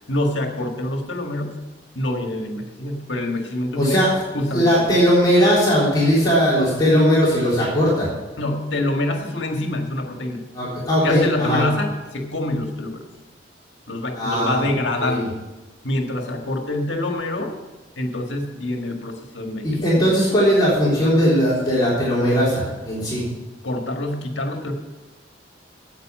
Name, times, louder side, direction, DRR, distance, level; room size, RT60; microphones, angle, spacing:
voice 1, 0.1-1.6 1.9-5.0 8.4-10.5 10.8-13.0 13.9-15.4 15.8-17.5 17.9-20.2 23.6-24.7, left 1 dB, 85° left, 3 dB, 1.7 m, -26 dB
voice 2, 3.8-4.1 4.5-8.1 10.5-11.6 14.2-14.7 15.0-15.2 19.6-23.2, equal, 20° left, -7 dB, 3.7 m, -18 dB
9.7 x 8.2 x 7.5 m, 1.2 s
head